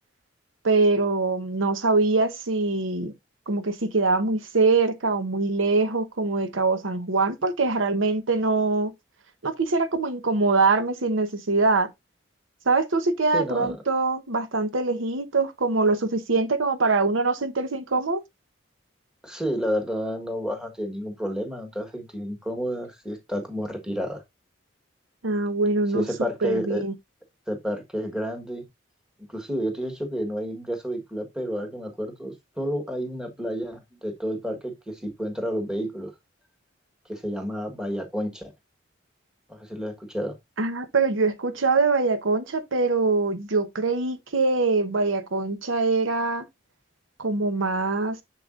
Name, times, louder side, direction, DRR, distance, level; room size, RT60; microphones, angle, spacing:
voice 1, 0.6-3.1 3.5-8.9 9.4-11.9 12.7-18.2 25.2-26.1 26.4-26.9 40.6-46.5 47.2-48.2, right 3 dB, 80° right, 0.9 m, -23 dB
voice 2, 13.3-13.8 19.2-24.2 25.9-26.8 27.5-28.6 29.3-36.1 37.1-38.5 39.5-40.3, equal, 5° right, 1.3 m, -30 dB
6.9 x 6.6 x 2.5 m
head